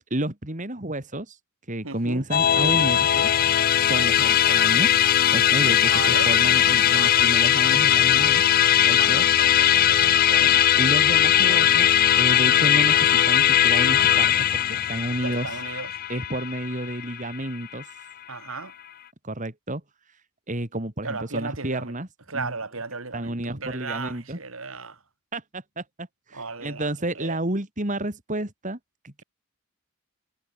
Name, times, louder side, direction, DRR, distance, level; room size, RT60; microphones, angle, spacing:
voice 1, 0.1-1.4 1.7-3.3 3.8-4.9 5.3-8.4 8.9-9.3 10.4-15.5 16.1-17.8 19.2-19.8 20.5-22.1 22.3-22.5 23.1-24.4 25.3-28.8 29.0-29.2, right 1 dB, 35° right, 3.2 m, -31 dB
voice 2, 1.8-2.2 3.9-4.1 5.8-6.3 6.9-7.3 8.9-10.6 15.2-15.9 18.3-18.7 21.0-21.9 22.3-24.9 26.3-26.9 27.1-27.4, right 4 dB, 75° right, 3.3 m, -35 dB
Musical instrument, 2.3-17.8, left 11 dB, 45° left, 0.4 m, -19 dB
head